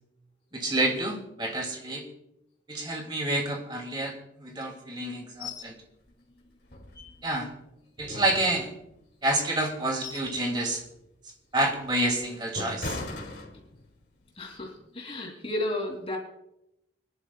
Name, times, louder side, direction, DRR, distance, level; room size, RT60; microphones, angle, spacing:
voice 1, 0.5-2.0 2.7-5.8 7.2-7.5 8.0-8.7 9.2-10.8 11.5-13.0, right 1 dB, 25° right, 2 dB, 2.6 m, -28 dB
sound 1, 5.4-5.7 6.1-6.2 6.7-7.5 8.0-9.0 9.6-10.4 10.8-11.0 11.6-14.0 14.4-14.6, left 2 dB, 60° left, 2.6 m, -39 dB
voice 2, 14.4-16.2, left 1 dB, 30° left, 0 dB, 3.1 m, -33 dB
26.0 x 11.0 x 2.4 m, 0.84 s
head